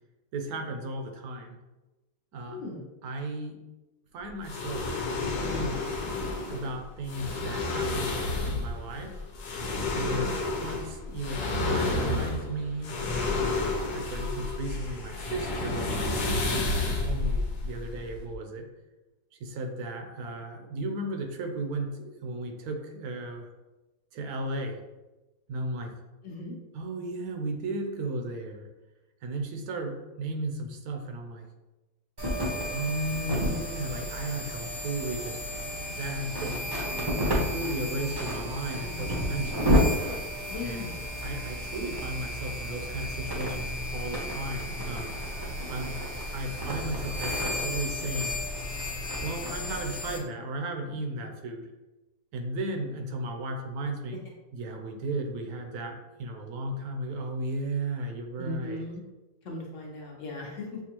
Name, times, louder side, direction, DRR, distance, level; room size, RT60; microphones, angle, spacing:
voice 1, 0.3-1.6 2.3-2.6 3.0-3.6 4.1-4.9 5.2-5.9 6.5-9.2 9.9-13.4 13.9-18.7 19.3-23.5 24.1-24.8 25.5-25.9 26.7-28.7 29.2-31.5 32.7-35.4 36.0-36.6 37.3-39.8 40.6-40.9 41.2-45.2 45.7-48.4 49.2-51.7 52.3-54.2 54.5-58.9, right 2 dB, 75° right, 4 dB, 1.1 m, -35 dB
voice 2, 2.5-2.9 26.2-26.5 40.5-41.0 58.4-59.0 59.4-60.6, left 2 dB, 60° left, -1 dB, 1.0 m, -37 dB
sound 1, 4.4-18.3, left 2 dB, 80° left, 1.3 m, -30 dB
sound 2, 32.2-50.2, equal, 30° right, 0.5 m, -31 dB
6.8 x 2.3 x 2.9 m, 1.1 s
omnidirectional pair, 1.7 m